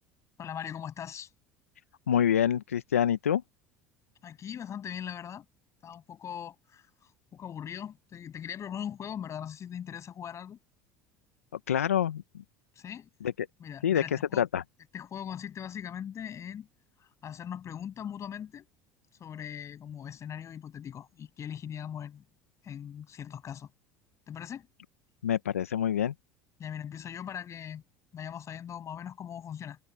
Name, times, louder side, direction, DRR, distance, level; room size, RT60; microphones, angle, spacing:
voice 1, 0.4-1.3 4.2-5.4 5.8-6.9 7.3-10.6 12.8-13.1 13.6-14.4 14.9-16.7 17.0-18.7 19.2-22.2 22.6-23.7 24.3-24.7 26.6-27.8 28.1-29.8, left 9 dB, 40° left, 7.9 m, -40 dB
voice 2, 2.1-3.4 11.7-12.2 13.4-13.5 13.8-14.0 14.4-14.6 25.2-26.1, left 9 dB, 90° left, 1.0 m, -26 dB
hypercardioid pair, 75°, 7 cm